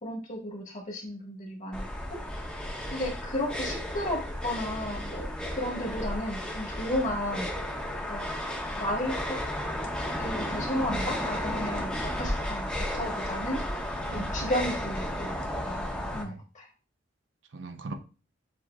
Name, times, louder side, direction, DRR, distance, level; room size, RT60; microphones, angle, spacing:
voice 1, 0.0-2.2 2.9-7.5 8.1-8.2 8.8-9.4 10.2-13.6 14.1-15.4 15.6-15.8 16.1-16.7, left 1 dB, 40° left, -1 dB, 1.4 m, -33 dB
sound 1, 1.7-16.2, left 1 dB, 5° left, 0.7 m, -33 dB
voice 2, 14.1-14.5 15.8-16.4 17.5-17.9, right 3 dB, 70° right, 8 dB, 0.6 m, -41 dB
7.4 x 2.7 x 2.4 m, 0.35 s
head